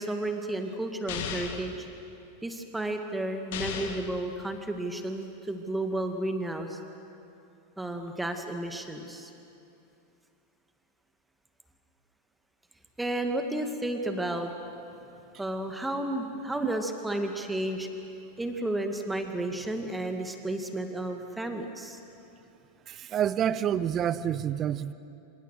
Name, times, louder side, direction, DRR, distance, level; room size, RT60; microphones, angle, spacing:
voice 1, 0.0-1.9 2.4-6.8 7.8-9.3 13.0-14.5 15.4-17.9 18.4-22.0, right 1 dB, 5° right, 5 dB, 2.1 m, -32 dB
sound 1, 1.1-1.7 3.5-4.1, left 7 dB, 55° left, 2.2 m, -35 dB
voice 2, 22.9-24.9, right 9 dB, 30° right, 16 dB, 0.8 m, -28 dB
27.5 x 26.5 x 6.5 m, 2.8 s
figure-of-eight pair, 90°, 0 cm